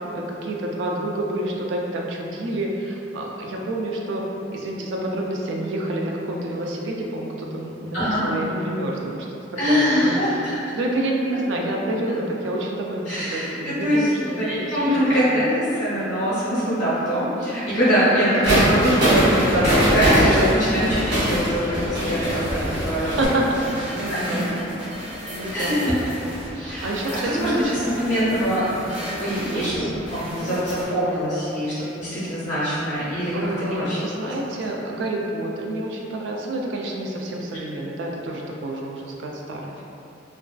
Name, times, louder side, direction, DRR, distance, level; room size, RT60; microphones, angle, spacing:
voice 1, 0.1-4.2 4.5-9.3 9.7-9.8 10.0-14.4 14.6-15.2 20.3-20.6 23.0-24.6 25.3-27.8 28.3-28.6 29.5-30.9 33.3-39.8, right 1 dB, 80° right, 0 dB, 0.3 m, -28 dB
voice 2, 9.6-10.8 13.1-23.1 23.9-24.5 25.5-26.0 26.5-28.9 29.2-34.0, equal, 40° left, -10 dB, 0.6 m, -23 dB
sound 1, 18.4-23.3, equal, 60° right, 0.8 m, -21 dB
sound 2, 22.2-30.8, equal, 30° right, 0.5 m, -35 dB
2.3 x 2.3 x 2.2 m, 2.8 s
head